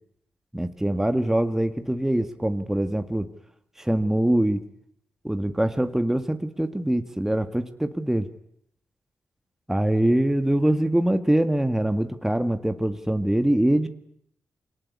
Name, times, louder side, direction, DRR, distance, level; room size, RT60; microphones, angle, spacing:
voice 1, 0.5-3.3 3.8-4.6 5.2-8.3 9.7-13.9, right 1 dB, 10° right, 8 dB, 1.7 m, -23 dB
23.0 x 18.5 x 9.7 m, 0.72 s
cardioid pair, 55°, 5 cm